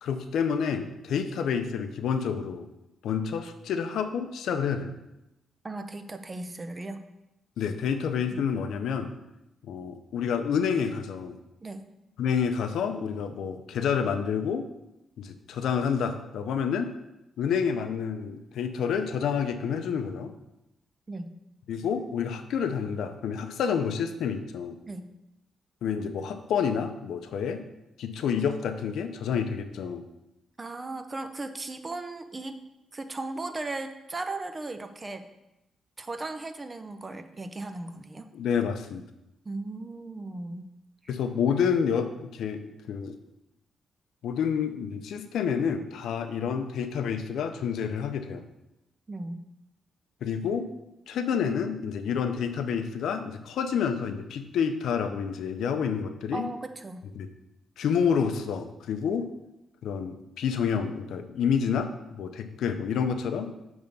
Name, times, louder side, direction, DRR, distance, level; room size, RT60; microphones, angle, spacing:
voice 1, 0.0-2.7 3.0-4.9 7.6-9.1 9.7-11.4 12.2-14.7 15.2-16.9 17.4-20.3 21.7-24.8 25.8-27.6 28.0-30.0 38.3-39.0 41.1-43.1 44.2-48.4 50.2-50.7 51.1-56.5 57.2-57.3 57.8-59.3 59.8-63.5, left 7 dB, 80° left, 8 dB, 0.5 m, -29 dB
voice 2, 5.6-7.0 8.3-8.4 11.6-11.8 21.1-21.3 24.8-25.1 30.6-32.6 32.9-35.3 36.0-38.3 39.4-40.7 41.0-41.1 49.1-49.4 56.3-57.0, right 2 dB, 25° right, 9 dB, 0.6 m, -37 dB
6.8 x 3.5 x 5.2 m, 0.92 s
cardioid pair, 95°, 0 cm